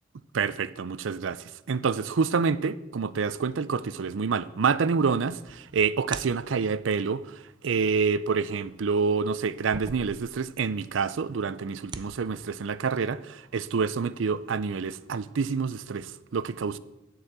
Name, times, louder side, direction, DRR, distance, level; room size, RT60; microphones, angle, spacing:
voice 1, 0.3-16.8, right 5 dB, 85° right, 0.5 m, -27 dB
sound 1, 5.4-6.8 8.2-10.7 10.9-11.0 11.6-12.1, right 4 dB, 25° right, 0.5 m, -43 dB
8.2 x 8.1 x 7.3 m
head